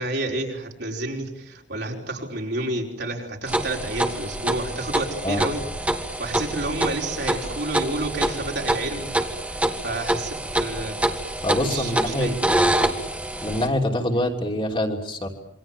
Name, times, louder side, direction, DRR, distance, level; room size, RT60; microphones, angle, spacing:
voice 1, 0.0-11.0 11.6-12.3 13.4-13.5, right 2 dB, 65° right, 0 dB, 5.0 m, -30 dB
sound 1, 3.5-13.7, right 1 dB, 10° right, 1.8 m, -26 dB
voice 2, 11.4-12.7 13.4-15.3, left 1 dB, 30° left, 2 dB, 3.1 m, -25 dB
27.5 x 24.0 x 7.4 m, 0.74 s
head